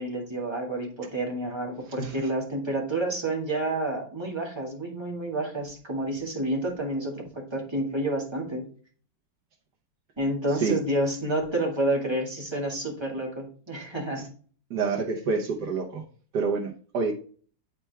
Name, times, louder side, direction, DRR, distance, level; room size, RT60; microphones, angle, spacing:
voice 1, 0.0-8.7 10.2-14.3, right 1 dB, 15° right, -1 dB, 1.9 m, -29 dB
voice 2, 2.0-2.3 10.6-10.8 14.2-14.3 14.7-16.0 16.3-17.1, right 4 dB, 90° right, -1 dB, 1.6 m, -28 dB
9.7 x 4.4 x 3.4 m, 0.43 s
omnidirectional pair, 1.7 m